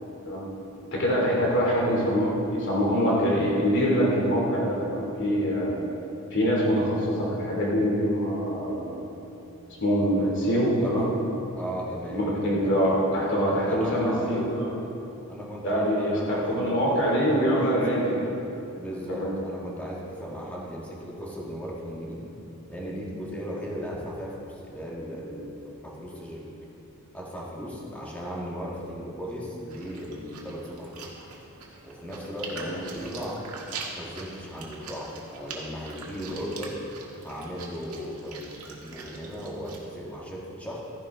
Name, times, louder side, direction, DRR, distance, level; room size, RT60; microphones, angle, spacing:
voice 1, 0.8-5.8 6.3-9.0 9.8-11.1 12.1-14.7 15.6-18.2 19.1-19.3 32.6-32.8, equal, 55° left, -4 dB, 2.9 m, -24 dB
voice 2, 10.2-10.5 10.7-11.0 11.6-12.2 12.6-12.7 13.6-14.4 15.3-18.0 18.8-22.2 22.7-26.5 27.1-31.1 31.8-36.8 37.2-40.8, equal, 5° left, -4 dB, 1.8 m, -37 dB
Chewing mastication, 29.7-39.8, right 4 dB, 90° right, 1.7 m, -43 dB
13.5 x 10.5 x 3.7 m, 2.9 s
head